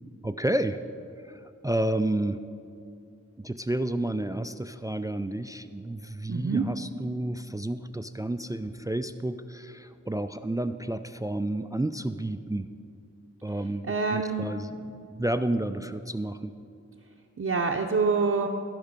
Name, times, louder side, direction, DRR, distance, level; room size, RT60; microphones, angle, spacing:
voice 1, 0.2-0.8 1.2-2.4 3.4-12.7 13.4-14.8 15.0-16.5, right 1 dB, 10° right, 11 dB, 0.3 m, -30 dB
voice 2, 6.3-6.6 13.9-14.5 17.4-18.5, right 4 dB, 50° right, 0 dB, 0.7 m, -26 dB
15.5 x 5.3 x 5.2 m, 2.4 s
wide cardioid pair, 50°, 30 cm